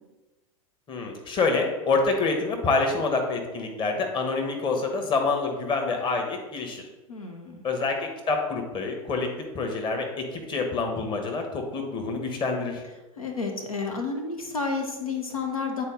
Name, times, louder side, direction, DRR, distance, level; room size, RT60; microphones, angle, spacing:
voice 1, 0.9-6.8 7.6-12.8, left 3 dB, 25° left, 3 dB, 1.3 m, -27 dB
voice 2, 7.1-7.6 13.2-15.8, left 4 dB, 80° left, 3 dB, 1.0 m, -31 dB
8.8 x 4.2 x 3.9 m, 1.1 s
figure-of-eight pair, 90°, 18 cm